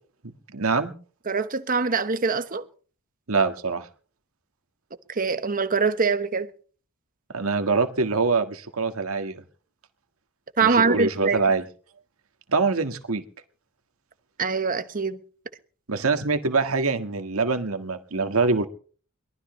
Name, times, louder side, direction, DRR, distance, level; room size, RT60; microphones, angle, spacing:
voice 1, 0.5-0.9 3.3-3.9 7.3-9.4 10.6-11.6 12.5-13.2 15.9-18.7, right 4 dB, 80° right, 1.7 m, -24 dB
voice 2, 1.3-2.6 5.1-6.5 10.6-11.4 14.4-15.2, right 5 dB, 40° right, 1.2 m, -23 dB
22.5 x 18.0 x 3.2 m
head